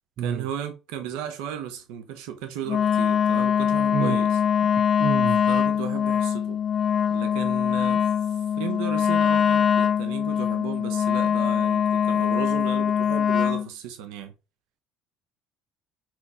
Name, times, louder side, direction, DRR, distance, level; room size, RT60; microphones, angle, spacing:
voice 1, 0.2-4.4 5.5-6.6 7.1-14.3, right 8 dB, 85° right, 1.1 m, -35 dB
Wind instrument woodwind instrument, 2.7-13.7, left 8 dB, 35° left, 0.4 m, -22 dB
voice 2, 4.8-5.5, right 8 dB, 45° right, 0.5 m, -29 dB
5.7 x 4.9 x 5.0 m
cardioid pair, 130°, 0 cm